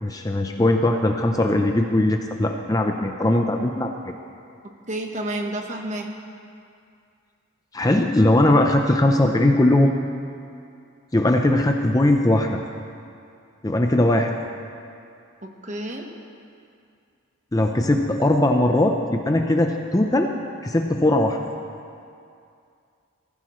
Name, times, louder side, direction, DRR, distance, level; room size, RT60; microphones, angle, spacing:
voice 1, 0.0-3.9 7.7-9.9 11.1-12.6 13.6-14.4 17.5-20.3 20.6-21.4, left 1 dB, 15° left, 3 dB, 0.6 m, -19 dB
voice 2, 4.9-6.1 15.4-16.1, right 1 dB, 35° right, 2 dB, 1.1 m, -30 dB
18.5 x 15.0 x 3.1 m, 2.4 s
head